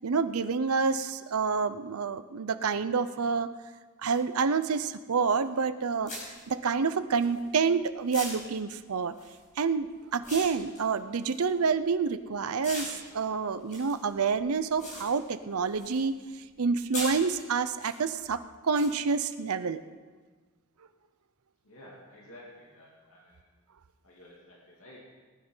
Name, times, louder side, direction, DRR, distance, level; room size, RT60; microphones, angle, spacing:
voice 1, 0.0-3.5 4.0-6.1 6.5-9.1 9.6-16.1 16.6-19.8, right 5 dB, 90° right, 11 dB, 0.6 m, -28 dB
sound 1, 4.1-4.2 5.4-5.5 6.1-7.7 8.1-12.2 12.6-16.1 16.4-17.9 18.7-18.9, left 1 dB, 35° left, 5.4 m, -41 dB
voice 2, 21.6-23.4 24.0-25.0, left 1 dB, 70° left, -4 dB, 2.8 m, -52 dB
19.0 x 10.5 x 5.5 m, 1.4 s
head